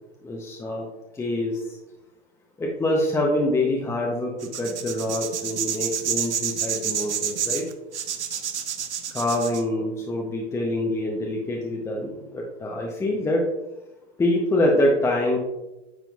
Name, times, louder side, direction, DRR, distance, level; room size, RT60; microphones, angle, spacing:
voice 1, 0.2-0.8 1.1-1.8 2.6-7.7 9.1-13.4 14.2-15.4, left 1 dB, 10° left, -1 dB, 0.6 m, -25 dB
sound 1, 4.4-9.6, right 8 dB, 85° right, 0.7 m, -28 dB
9.3 x 4.4 x 2.3 m, 1.0 s
hypercardioid pair, 110°, 33 cm